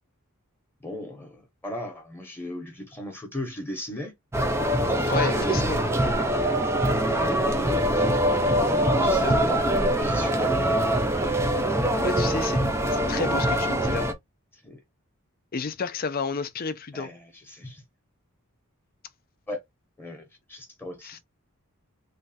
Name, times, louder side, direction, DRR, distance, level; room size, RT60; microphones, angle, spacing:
voice 1, 0.8-4.1 4.9-5.9 9.0-9.7 10.0-10.8 14.6-14.8 16.9-17.8 19.5-19.6 20.0-21.2, left 1 dB, 10° left, 0.9 m, -37 dB
sound 1, 4.3-14.1, right 1 dB, 10° right, 0.5 m, -23 dB
voice 2, 5.1-5.8 9.2-9.3 12.0-12.6 12.9-14.1 15.5-17.1 21.0-21.2, left 5 dB, 45° left, 0.5 m, -31 dB
3.2 x 2.3 x 4.1 m
head